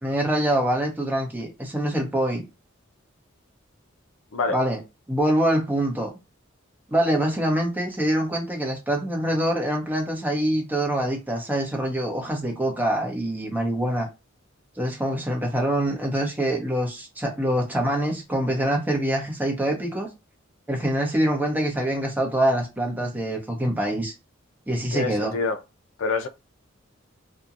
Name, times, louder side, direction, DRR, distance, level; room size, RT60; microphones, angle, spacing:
voice 1, 0.0-2.4 4.5-4.8 5.1-6.1 6.9-14.1 14.8-20.1 20.7-24.1 24.7-25.4, right 1 dB, 10° right, 0.7 m, -25 dB
voice 2, 24.9-25.6 26.0-26.3, left 4 dB, 80° left, 0.4 m, -26 dB
2.8 x 2.1 x 2.4 m
head